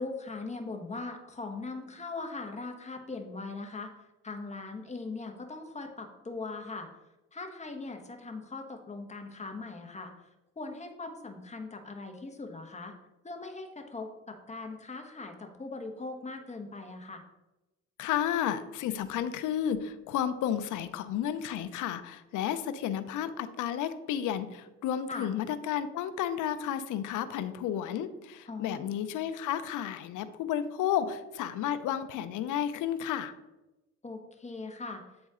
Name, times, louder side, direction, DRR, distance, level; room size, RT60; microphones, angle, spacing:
voice 1, 0.0-3.9 4.2-6.9 7.3-10.1 10.6-12.9 13.2-17.2 25.1-25.3 28.5-28.9 34.0-35.0, left 3 dB, 20° left, 4 dB, 1.1 m, -40 dB
voice 2, 18.0-33.3, left 10 dB, 85° left, 11 dB, 0.6 m, -32 dB
8.8 x 4.1 x 3.6 m, 0.99 s
cardioid pair, 90°, 30 cm